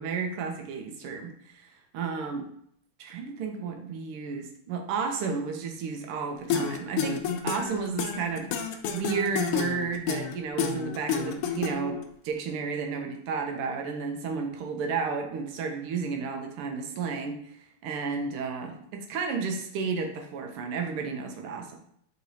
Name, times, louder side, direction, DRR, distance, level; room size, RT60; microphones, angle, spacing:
voice 1, 0.0-2.5 3.0-8.5 8.9-12.0 12.2-21.8, right 5 dB, 80° right, 3 dB, 1.6 m, -32 dB
sound 1, 6.5-12.0, left 7 dB, 90° left, 1.5 m, -30 dB
4.8 x 3.9 x 2.7 m, 0.69 s
omnidirectional pair, 2.4 m